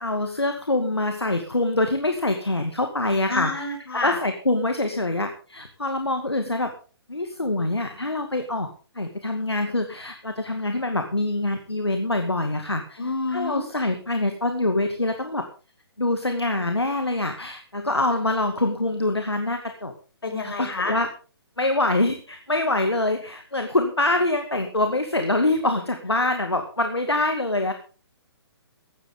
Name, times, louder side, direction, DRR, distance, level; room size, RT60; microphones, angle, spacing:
voice 1, 0.0-3.6 3.9-6.7 7.1-8.7 8.9-13.0 13.3-15.5 16.0-19.9 20.4-21.1 21.6-27.7, left 2 dB, 80° left, 6 dB, 2.2 m, -25 dB
voice 2, 3.3-4.2 13.0-13.6 20.2-21.0, left 3 dB, 65° left, 4 dB, 6.5 m, -28 dB
16.0 x 13.0 x 3.8 m, 0.37 s
figure-of-eight pair, 135°, 13 cm